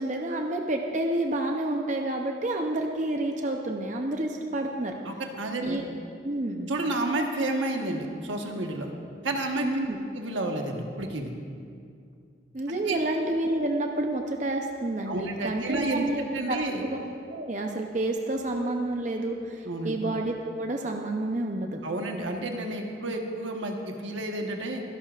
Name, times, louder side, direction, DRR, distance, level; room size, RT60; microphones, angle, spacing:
voice 1, 0.0-4.9 5.6-5.9 6.2-6.7 9.6-10.0 12.5-21.8, right 1 dB, 40° right, 2 dB, 0.7 m, -29 dB
voice 2, 5.0-5.8 6.7-8.9 9.2-9.7 10.1-11.3 12.7-13.0 15.1-16.1 16.3-16.8 19.6-20.0 21.8-23.8 24.0-24.8, right 2 dB, 85° right, 2 dB, 1.3 m, -30 dB
24.5 x 11.0 x 2.5 m, 2.3 s
head